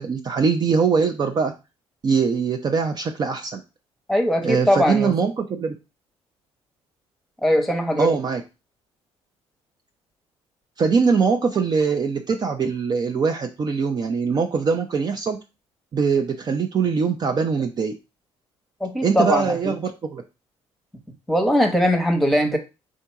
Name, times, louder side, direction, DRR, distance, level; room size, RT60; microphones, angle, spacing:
voice 1, 0.0-1.5 2.0-3.6 4.4-5.8 8.0-8.4 10.8-15.4 15.9-17.9 19.0-20.2, right 5 dB, 40° right, 5 dB, 0.5 m, -22 dB
voice 2, 4.1-5.1 7.4-8.2 18.8-19.7 21.3-22.6, equal, ahead, 4 dB, 1.0 m, -20 dB
3.7 x 2.7 x 4.5 m, 0.27 s
cardioid pair, 100°, 11 cm